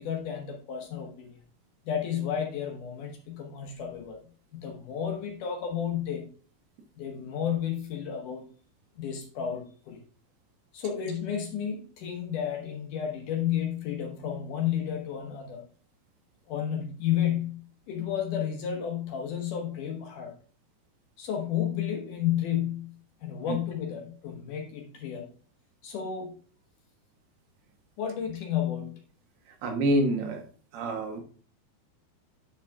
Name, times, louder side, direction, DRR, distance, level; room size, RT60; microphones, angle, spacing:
voice 1, 0.0-1.4 1.9-4.2 4.5-6.3 7.0-8.5 9.0-10.0 10.7-15.6 16.5-20.3 21.2-25.3 25.8-26.3 28.0-29.0, left 9 dB, 70° left, 3 dB, 2.2 m, -32 dB
voice 2, 29.6-30.4 30.7-31.2, right 1 dB, 85° right, 4 dB, 3.3 m, -26 dB
9.8 x 5.0 x 3.4 m, 0.42 s
omnidirectional pair, 4.4 m